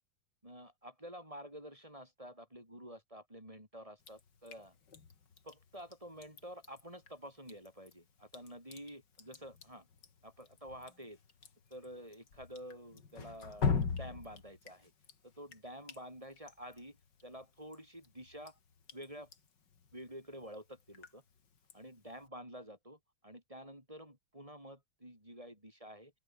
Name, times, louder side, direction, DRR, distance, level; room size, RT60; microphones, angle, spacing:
voice 1, 0.4-4.8 5.4-9.9 10.2-11.2 11.7-14.9 15.2-17.0 17.2-18.6 18.9-19.3 19.9-21.2 21.7-26.1, equal, 15° right, 7.7 m, -50 dB
Drip, 4.0-22.3, left 5 dB, 65° left, 3.1 m, -44 dB
open air
omnidirectional pair, 2.1 m